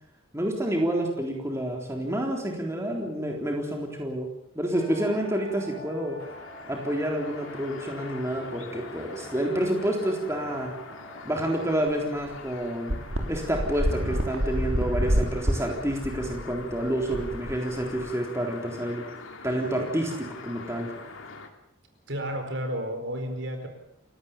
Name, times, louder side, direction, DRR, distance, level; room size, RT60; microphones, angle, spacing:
voice 1, 0.3-4.3 4.5-6.2 6.7-10.7 11.3-12.9 13.3-19.1 19.4-20.9, right 1 dB, 15° right, 0 dB, 3.8 m, -28 dB
sound 1, 4.7-11.4, equal, 15° left, 6.5 m, -47 dB
sound 2, 6.2-21.5, left 3 dB, 75° left, 3.0 m, -44 dB
sound 3, 11.9-12.0 12.3-12.4 12.9-18.1, equal, 80° right, 3.9 m, -28 dB
voice 2, 22.1-23.7, equal, 60° right, 6 dB, 4.7 m, -31 dB
29.5 x 17.5 x 7.4 m, 0.75 s
head